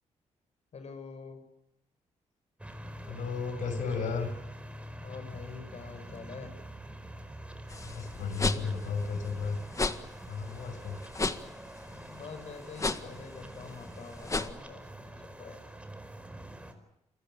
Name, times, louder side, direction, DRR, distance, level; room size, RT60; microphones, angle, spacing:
voice 1, 0.7-1.4 5.0-6.5 11.9-15.7, left 5 dB, 60° left, 8 dB, 7.7 m, -46 dB
sound 1, 2.6-16.7, right 1 dB, 10° right, 5.0 m, -45 dB
voice 2, 3.1-4.3 7.8-9.6 10.2-11.0, left 5 dB, 90° left, 8 dB, 6.2 m, -33 dB
sound 2, 7.7-14.5, left 3 dB, 25° left, 1.8 m, -35 dB
29.0 x 24.0 x 7.2 m, 0.84 s
cardioid pair, 75°, 13 cm